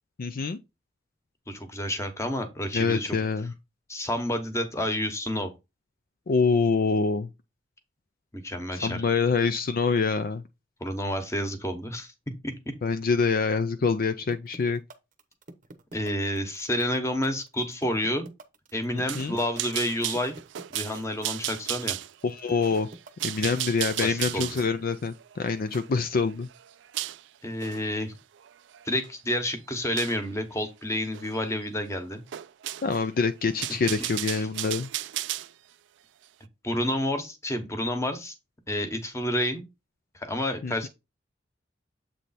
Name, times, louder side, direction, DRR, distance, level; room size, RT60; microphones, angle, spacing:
voice 1, 0.2-0.6 2.7-3.5 6.3-7.3 8.8-10.4 12.8-14.8 18.9-19.4 22.2-22.9 23.2-26.5 32.8-34.9 40.6-40.7, left 4 dB, 50° left, 0.4 m, -25 dB
voice 2, 1.5-3.2 3.9-5.5 8.3-9.0 10.8-12.1 12.4-12.5 15.9-18.3 18.7-20.3 20.7-22.0 24.0-24.6 27.4-28.2 28.9-32.2 33.8-33.9 36.6-38.3 38.7-39.6 40.1-40.9, left 1 dB, 15° left, 1.0 m, -29 dB
sound 1, 14.3-23.5, right 2 dB, 45° right, 0.8 m, -46 dB
sound 2, 19.1-27.2 27.6-27.9 28.4-29.1 30.0-30.2 31.1-31.4 31.6-31.7 32.3-33.1 33.4-35.5, right 15 dB, 65° right, 0.4 m, -35 dB
7.6 x 3.2 x 4.1 m
head